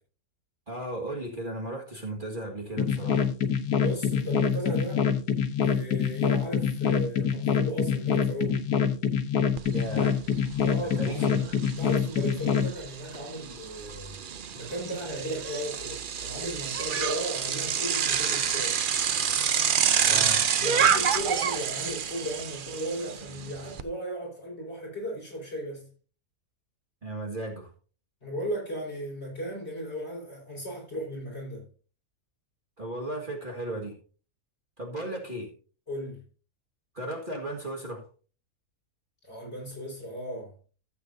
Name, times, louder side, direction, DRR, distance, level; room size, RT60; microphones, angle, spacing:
voice 1, 0.7-3.3 9.7-10.2 10.8-11.6 20.1-20.4 27.0-27.7 32.8-34.0 34.8-35.5 36.9-38.0, right 1 dB, 35° right, 1.9 m, -35 dB
sound 1, 2.8-12.7, left 7 dB, 90° left, 1.6 m, -25 dB
voice 2, 3.8-5.0 5.6-8.6 10.6-11.5 11.8-14.2 14.6-18.8 20.1-25.9 28.2-31.7 35.9-36.2 39.2-40.5, equal, 45° left, 5.3 m, -36 dB
Bicycle, 9.6-9.7 10.0-23.8, right 7 dB, 55° right, 0.6 m, -28 dB
15.5 x 8.0 x 2.7 m
omnidirectional pair, 1.6 m